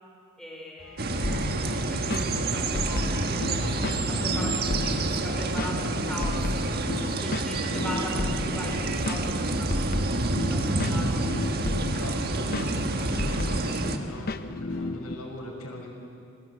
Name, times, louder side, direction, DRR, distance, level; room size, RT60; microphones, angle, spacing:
voice 1, 0.4-10.0 10.5-11.1, left 1 dB, ahead, -2 dB, 4.8 m, -40 dB
sound 1, 0.8-15.1, left 1 dB, 60° left, 2.9 m, -47 dB
sound 2, 1.0-14.0, right 2 dB, 45° right, 1.5 m, -28 dB
sound 3, 1.2-15.1, left 2 dB, 45° left, 0.7 m, -33 dB
voice 2, 7.5-8.0 11.8-15.9, left 1 dB, 85° left, 0 dB, 6.4 m, -40 dB
29.0 x 21.5 x 8.2 m, 2.5 s
head